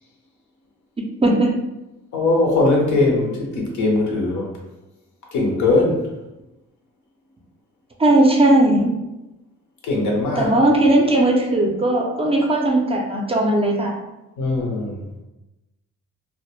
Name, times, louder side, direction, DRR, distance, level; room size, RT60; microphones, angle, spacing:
voice 1, 1.0-1.5 8.0-8.9 10.4-13.9, right 1 dB, 20° right, 0 dB, 0.4 m, -17 dB
voice 2, 2.1-4.5 5.3-6.0 9.8-10.5 14.4-15.0, left 2 dB, 75° left, -1 dB, 0.8 m, -20 dB
2.1 x 2.0 x 3.0 m, 0.98 s
cardioid pair, 90°, 30 cm